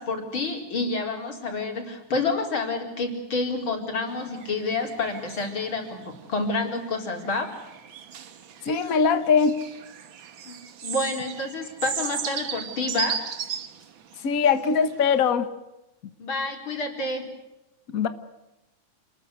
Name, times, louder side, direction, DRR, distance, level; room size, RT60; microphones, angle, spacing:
voice 1, 0.0-7.5 10.5-13.2 16.2-17.2, left 3 dB, 40° left, 2 dB, 5.2 m, -29 dB
sound 1, 4.1-15.3, right 8 dB, 50° right, 1.7 m, -37 dB
voice 2, 8.6-9.6 14.2-15.5 17.9-18.1, left 6 dB, 70° left, 11 dB, 0.8 m, -21 dB
29.0 x 21.0 x 8.1 m, 0.98 s
omnidirectional pair, 3.5 m